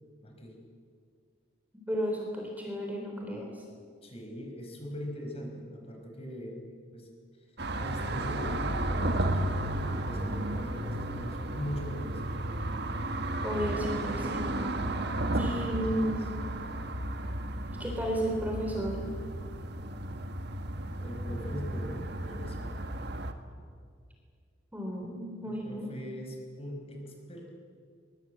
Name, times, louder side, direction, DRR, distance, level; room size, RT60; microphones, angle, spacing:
voice 1, 0.2-0.5 4.0-6.6 6.9-7.1 7.8-12.2 13.6-13.8 15.1-16.2 20.9-22.8 25.4-27.5, equal, 30° left, 2 dB, 5.0 m, -41 dB
voice 2, 1.9-3.6 13.4-14.8 15.4-16.3 17.8-19.1 24.7-25.9, equal, 10° right, 1 dB, 3.5 m, -33 dB
sound 1, 7.6-23.3, right 1 dB, 55° right, 1.7 m, -33 dB
23.0 x 22.0 x 9.0 m, 2.1 s
head